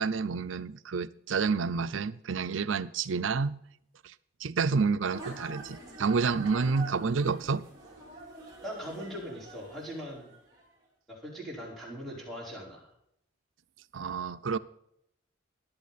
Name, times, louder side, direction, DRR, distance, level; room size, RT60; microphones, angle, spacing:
voice 1, 0.0-3.6 4.0-4.1 4.4-7.6 13.9-14.6, right 5 dB, 80° right, 0.6 m, -29 dB
sound 1, 5.1-10.7, right 2 dB, 20° right, 3.8 m, -46 dB
voice 2, 8.6-10.3 11.1-12.9, equal, ahead, 4.6 m, -40 dB
14.5 x 11.5 x 4.1 m
head